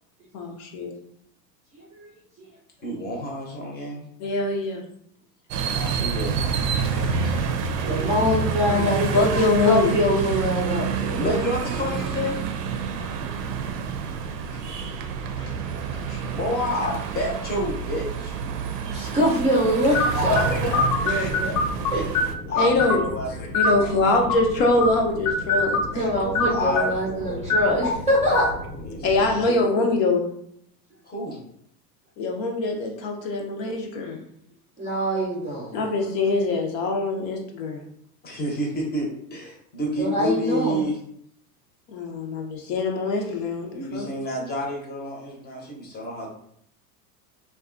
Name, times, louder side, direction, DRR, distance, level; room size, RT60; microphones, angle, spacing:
voice 1, 0.3-0.9 4.2-4.8 8.7-9.9 15.4-15.5 16.1-16.2 21.1-21.3 22.5-23.0 23.5-26.0 29.0-30.3 32.2-34.2 35.7-37.8 41.9-44.1, left 2 dB, 55° left, 1 dB, 0.7 m, -23 dB
voice 2, 2.8-4.1 5.7-7.6 11.1-12.4 16.2-18.4 20.4-21.1 21.9-22.1 22.5-24.0 26.2-27.4 28.8-29.7 31.0-31.4 38.2-40.9 43.7-46.3, equal, 20° left, -1 dB, 0.8 m, -30 dB
sound 1, 5.5-22.3, right 6 dB, 80° right, 0.5 m, -28 dB
voice 3, 7.8-11.3 18.9-21.6 21.9-22.0 25.9-28.5 34.8-35.9 40.0-40.8, equal, 15° right, -5 dB, 0.5 m, -24 dB
sound 2, 19.9-29.5, left 3 dB, 80° left, 1.1 m, -26 dB
2.6 x 2.3 x 2.5 m, 0.69 s
hypercardioid pair, 110°, 47 cm